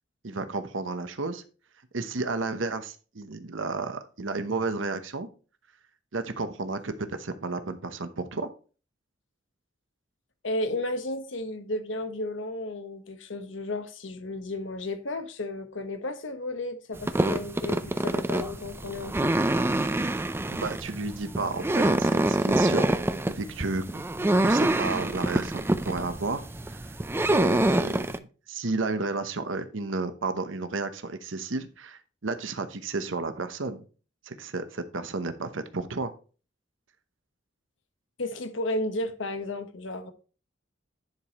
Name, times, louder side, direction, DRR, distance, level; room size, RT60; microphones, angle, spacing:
voice 1, 0.2-1.4 1.9-5.3 6.1-8.5 20.5-22.9 23.3-24.0 24.4-26.4 26.7-26.9 27.3-33.8 34.3-36.1, right 3 dB, 75° right, 0.9 m, -32 dB
voice 2, 10.4-19.4 38.2-40.1, left 2 dB, 75° left, 1.2 m, -33 dB
sound 1, 17.0-28.2, right 1 dB, 10° right, 0.4 m, -26 dB
10.5 x 4.9 x 4.1 m
head